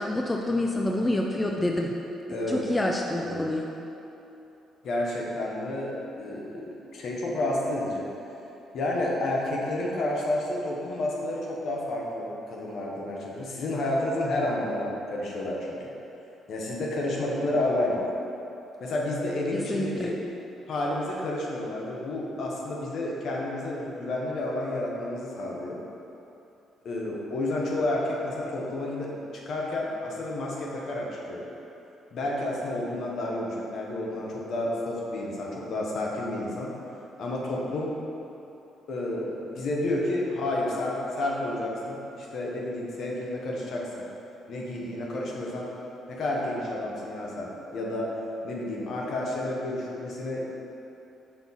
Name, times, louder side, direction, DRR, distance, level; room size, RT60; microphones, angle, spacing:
voice 1, 0.0-1.9 2.5-3.7 19.5-20.1, left 1 dB, 15° left, 0 dB, 0.3 m, -27 dB
voice 2, 2.3-2.6 3.2-3.4 4.8-8.1 8.7-15.8 16.5-18.0 18.8-20.2 20.7-25.8 26.8-31.4 32.1-36.7 37.2-37.9 38.9-44.1 44.5-45.7 46.1-48.1 48.4-50.5, left 1 dB, 65° left, -3 dB, 0.8 m, -30 dB
5.6 x 2.3 x 4.1 m, 3.0 s
cardioid pair, 85°, 0 cm